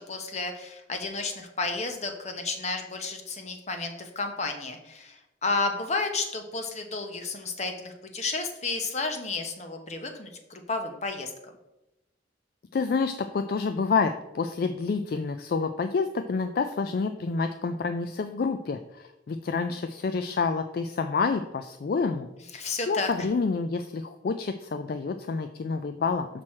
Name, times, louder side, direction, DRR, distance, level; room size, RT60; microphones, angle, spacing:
voice 1, 0.0-11.5 22.5-23.3, left 3 dB, 35° left, 5 dB, 0.8 m, -32 dB
voice 2, 12.7-22.3 22.9-26.3, left 4 dB, 50° left, 8 dB, 0.3 m, -28 dB
6.2 x 6.0 x 4.3 m, 0.93 s
head